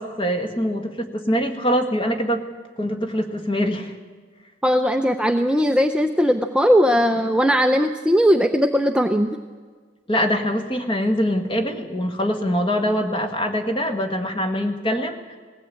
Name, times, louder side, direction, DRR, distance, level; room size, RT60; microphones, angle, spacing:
voice 1, 0.0-2.4 2.8-3.9 10.1-15.4, equal, 25° left, 5 dB, 1.8 m, -23 dB
voice 2, 4.6-9.4, equal, 5° right, 5 dB, 0.6 m, -19 dB
20.0 x 16.0 x 8.5 m, 1.5 s
head